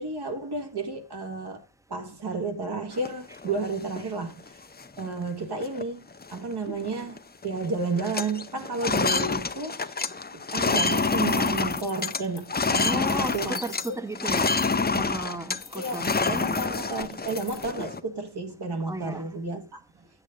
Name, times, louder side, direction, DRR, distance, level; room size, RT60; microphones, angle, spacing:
voice 1, 0.0-1.6 1.9-4.4 5.0-10.0 10.3-13.6 15.7-16.0 16.3-19.8, right 3 dB, 65° right, 1.8 m, -32 dB
sound 1, 2.9-4.0 4.5-4.6 4.8-5.2 5.6-5.8 6.1-7.2 7.4-7.7 7.9-13.9 14.1-18.0, left 4 dB, 25° left, 0.6 m, -27 dB
sound 2, 10.7-14.8 15.6-17.7, left 7 dB, 70° left, 1.6 m, -44 dB
voice 2, 12.8-14.6 14.9-16.6 18.9-19.2, right 1 dB, 5° right, 0.8 m, -34 dB
9.6 x 8.0 x 3.9 m
wide cardioid pair, 115°, 42 cm